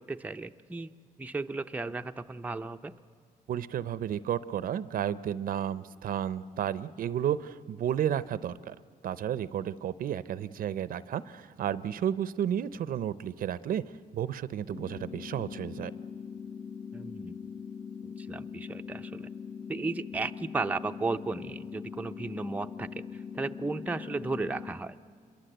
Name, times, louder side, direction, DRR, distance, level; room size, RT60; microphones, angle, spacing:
voice 1, 0.1-0.9 1.2-2.9 16.9-17.4 18.0-19.3 19.7-23.0 23.3-25.0, right 3 dB, 10° right, 7 dB, 0.6 m, -34 dB
voice 2, 3.5-8.8 9.0-13.8 14.1-15.9, right 10 dB, 70° right, 16 dB, 0.6 m, -32 dB
sound 1, 14.7-24.7, left 6 dB, 40° left, 1.6 m, -42 dB
26.5 x 22.5 x 7.9 m, 2.2 s
cardioid pair, 115°, 15 cm